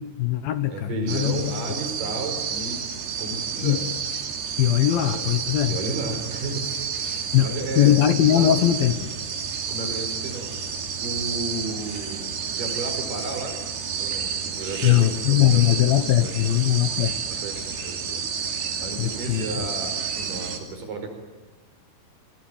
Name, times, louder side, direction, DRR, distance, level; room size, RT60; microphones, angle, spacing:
voice 1, 0.0-1.5 3.6-3.8 4.6-5.8 7.3-9.1 14.8-17.2 19.0-19.4, left 12 dB, 70° left, 11 dB, 2.6 m, -21 dB
voice 2, 0.7-2.8 3.2-3.8 5.1-5.3 5.6-6.7 6.9-8.5 8.8-9.0 9.7-10.6 11.0-13.6 14.0-16.6 17.3-18.2 18.8-21.1, right 3 dB, 55° right, 5 dB, 6.5 m, -33 dB
sound 1, 1.1-20.6, right 6 dB, 75° right, 5.0 m, -30 dB
30.0 x 22.0 x 9.1 m, 1.2 s
omnidirectional pair, 4.8 m